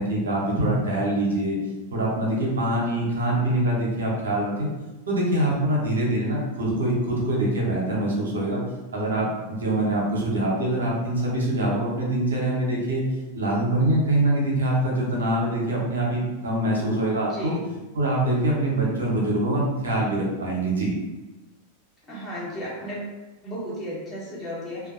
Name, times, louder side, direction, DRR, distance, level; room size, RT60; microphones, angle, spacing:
voice 1, 0.0-1.6 1.9-4.7 5.1-8.6 8.9-13.0 13.3-17.5 18.0-20.9, right 1 dB, 70° right, -3 dB, 0.7 m, -24 dB
voice 2, 17.3-17.8 22.1-23.2 23.4-24.9, equal, 20° left, -7 dB, 1.0 m, -34 dB
2.6 x 2.2 x 2.5 m, 1.1 s
figure-of-eight pair, 90°, 0 cm